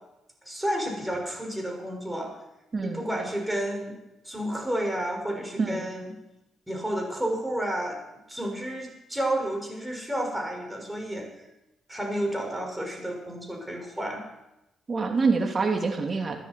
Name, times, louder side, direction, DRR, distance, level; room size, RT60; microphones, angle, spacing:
voice 1, 0.4-2.3 2.8-4.0 4.2-6.1 6.7-8.0 8.3-11.4 11.9-14.2, right 1 dB, 5° right, 1 dB, 6.3 m, -31 dB
voice 2, 14.9-16.3, right 4 dB, 35° right, 3 dB, 3.0 m, -25 dB
25.5 x 11.0 x 4.7 m, 0.93 s
figure-of-eight pair, 40°, 0 cm